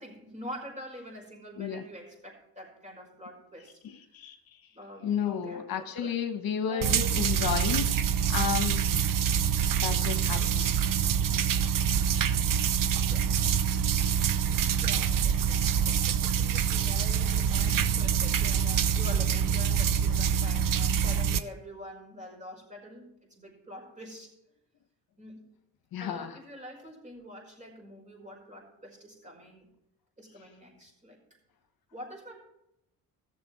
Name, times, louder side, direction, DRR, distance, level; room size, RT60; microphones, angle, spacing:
voice 1, 0.0-3.8 4.7-6.1 6.7-7.1 10.3-10.6 13.0-13.5 14.8-24.3 25.2-25.4 26.0-29.7 30.2-31.2 31.9-32.4, equal, 20° right, -1 dB, 5.3 m, -46 dB
voice 2, 3.8-4.3 5.0-8.0 8.3-8.8 9.7-10.6 25.9-26.4, left 8 dB, 65° left, 7 dB, 1.2 m, -32 dB
sound 1, 6.8-21.4, right 8 dB, 60° right, 0.8 m, -26 dB
16.0 x 7.1 x 4.7 m, 0.81 s
cardioid pair, 100°, 37 cm